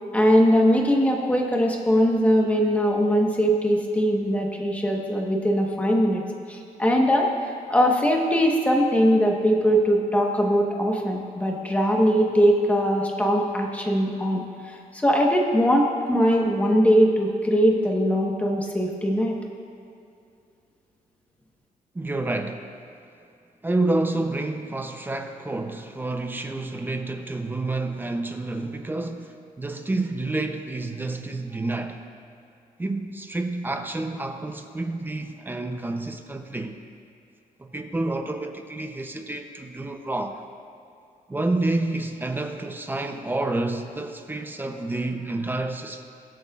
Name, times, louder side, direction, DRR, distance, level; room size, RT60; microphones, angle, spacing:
voice 1, 0.1-6.2 6.5-19.4, equal, 10° left, 0 dB, 1.2 m, -21 dB
voice 2, 21.9-22.7 23.6-32.0 32.8-36.8 37.6-40.4 41.3-46.0, right 2 dB, 15° right, 6 dB, 0.6 m, -29 dB
23.5 x 8.2 x 2.4 m, 2.5 s
wide cardioid pair, 155°, 15 cm